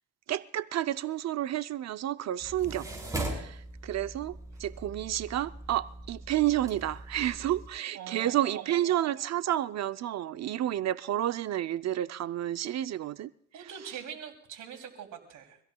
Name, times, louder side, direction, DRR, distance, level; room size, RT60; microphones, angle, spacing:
voice 1, 0.3-2.9 3.3-3.6 3.8-13.3, right 12 dB, 60° right, 0.6 m, -30 dB
sound 1, 2.4-7.7, right 1 dB, 10° right, 5.0 m, -40 dB
voice 2, 7.9-8.7 13.5-15.6, right 8 dB, 80° right, 3.0 m, -43 dB
25.5 x 16.0 x 2.3 m
cardioid pair, 90°, 30 cm